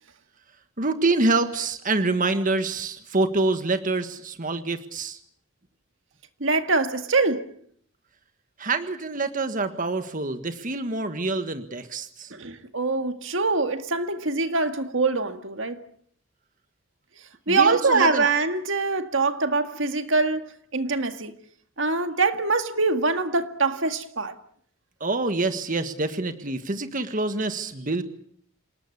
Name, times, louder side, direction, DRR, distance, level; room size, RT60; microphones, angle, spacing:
voice 1, 0.8-5.2 8.6-12.3 17.5-18.2 25.0-28.0, right 3 dB, 40° right, 1.6 m, -26 dB
voice 2, 6.4-7.5 12.3-15.8 17.5-21.3 21.8-24.3, right 3 dB, 70° right, 2.0 m, -24 dB
28.0 x 19.0 x 8.5 m
head